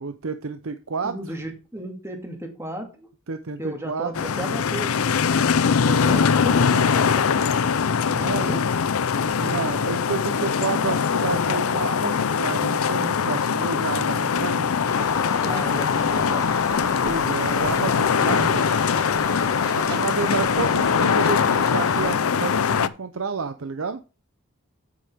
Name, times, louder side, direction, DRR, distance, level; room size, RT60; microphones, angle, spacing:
voice 1, 0.0-1.1 3.3-4.1 8.2-8.5 9.4-14.7 17.0-18.7 19.7-24.0, right 4 dB, 70° right, 9 dB, 0.6 m, -30 dB
voice 2, 1.0-3.1 3.6-7.6 8.1-8.6 15.4-16.5, right 1 dB, 10° right, 4 dB, 2.0 m, -35 dB
sound 1, 4.1-22.9, left 6 dB, 80° left, 0.6 m, -22 dB
Stream, 14.9-22.1, left 2 dB, 15° left, 1.9 m, -35 dB
sound 2, 15.5-15.6 18.3-19.0 19.6-20.3 20.9-21.7, right 4 dB, 45° right, 4.5 m, -44 dB
8.8 x 8.3 x 3.5 m, 0.32 s
head